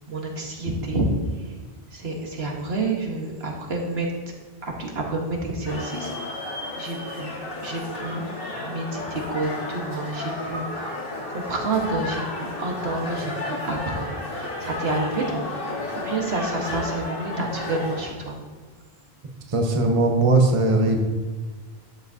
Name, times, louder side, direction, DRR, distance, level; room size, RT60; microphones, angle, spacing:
voice 1, 0.1-1.1 1.9-4.1 4.6-6.3 6.8-11.0 11.3-15.5 15.9-18.3, right 2 dB, 75° right, 0 dB, 1.6 m, -29 dB
sound 1, 5.7-18.1, left 2 dB, 60° left, 2.3 m, -32 dB
voice 2, 19.5-21.0, right 2 dB, 35° right, 2 dB, 1.0 m, -19 dB
12.0 x 7.5 x 2.8 m, 1.3 s
omnidirectional pair, 1.0 m